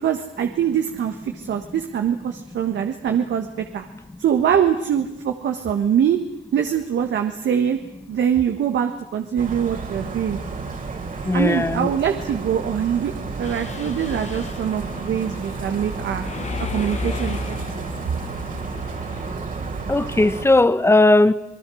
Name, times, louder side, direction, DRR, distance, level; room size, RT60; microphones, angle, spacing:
voice 1, 0.0-3.5 3.7-3.8 4.2-6.2 6.5-7.8 8.1-10.4 11.3-16.3 16.6-17.8, right 8 dB, 65° right, 1.6 m, -23 dB
sound 1, 9.4-20.5, right 4 dB, 45° right, 3.6 m, -32 dB
voice 2, 11.2-11.9 14.8-14.9 19.9-21.3, left 2 dB, 10° left, 1.1 m, -17 dB
Mechanisms, 13.4-19.3, left 4 dB, 35° left, 1.8 m, -34 dB
27.5 x 20.0 x 6.4 m
cardioid pair, 90°, 20 cm